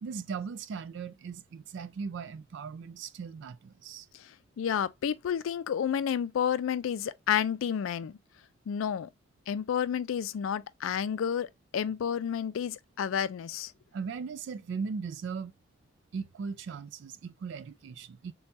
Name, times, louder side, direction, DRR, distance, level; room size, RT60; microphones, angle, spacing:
voice 1, 0.0-4.1 13.9-15.5 16.1-18.3, right 5 dB, 60° right, 0.3 m, -38 dB
voice 2, 4.6-8.2 8.7-9.1 9.5-11.5 11.7-13.7, left 8 dB, 85° left, 0.3 m, -30 dB
4.4 x 2.3 x 2.6 m
head